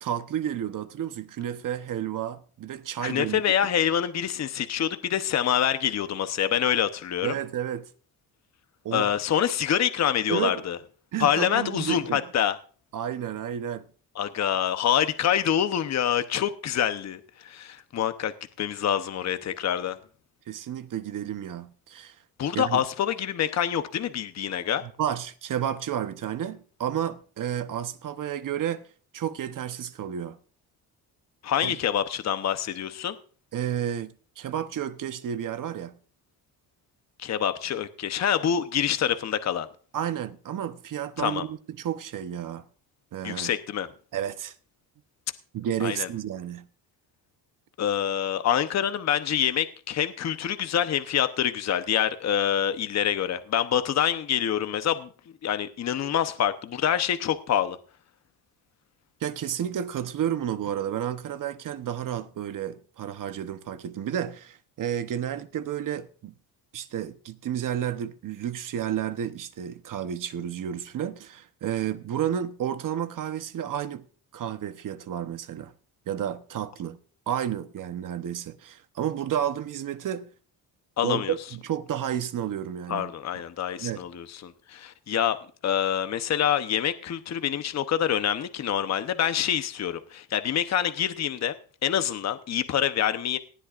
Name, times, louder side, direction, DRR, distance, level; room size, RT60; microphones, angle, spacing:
voice 1, 0.0-3.4 7.2-7.9 8.8-9.1 10.3-10.6 11.1-12.2 12.9-13.9 20.5-22.2 22.5-22.8 24.8-28.8 29.1-30.4 31.6-31.8 33.5-36.0 39.9-42.6 43.1-43.5 44.1-44.5 45.5-46.7 59.2-66.3 66.7-74.0 74.3-75.7 76.1-77.0 77.3-80.3 81.0-83.1 83.8-84.0, right 10 dB, 55° right, 1.0 m, -31 dB
voice 2, 3.0-7.3 8.9-10.8 11.2-12.6 14.2-18.3 18.6-20.0 22.4-24.8 31.4-33.2 37.2-39.7 41.2-41.4 43.2-43.9 45.8-46.1 47.8-55.1 55.4-57.8 81.0-81.3 82.9-85.4 85.6-91.5 91.8-93.4, left 9 dB, 45° left, 0.9 m, -26 dB
18.5 x 11.5 x 2.5 m
cardioid pair, 120°, 39 cm